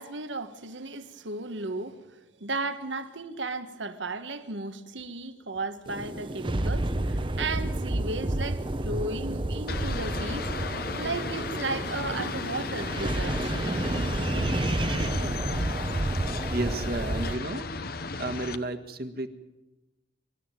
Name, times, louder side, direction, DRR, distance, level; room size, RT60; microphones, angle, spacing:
voice 1, 0.0-13.8, right 3 dB, 80° right, 1.5 m, -35 dB
sound 1, 5.9-17.4, right 1 dB, 25° right, 0.9 m, -30 dB
sound 2, 9.7-18.6, left 4 dB, 50° left, 1.0 m, -35 dB
voice 2, 14.9-15.3 16.5-17.7 18.2-19.3, right 2 dB, 55° right, 1.7 m, -33 dB
25.5 x 13.0 x 9.0 m
head